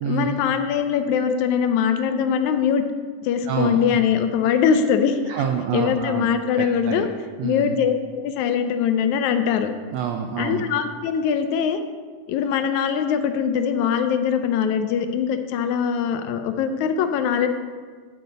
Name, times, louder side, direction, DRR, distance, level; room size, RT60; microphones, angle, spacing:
voice 1, 0.1-2.8 3.2-5.2 5.7-7.1 7.4-9.7 10.4-11.8 12.3-17.5, left 7 dB, 80° left, 8 dB, 1.9 m, -22 dB
voice 2, 3.4-3.8 5.3-6.3 6.6-7.1 7.4-7.7 9.9-10.6, right 7 dB, 80° right, 3 dB, 1.5 m, -27 dB
10.5 x 7.9 x 4.2 m, 1.5 s
omnidirectional pair, 3.6 m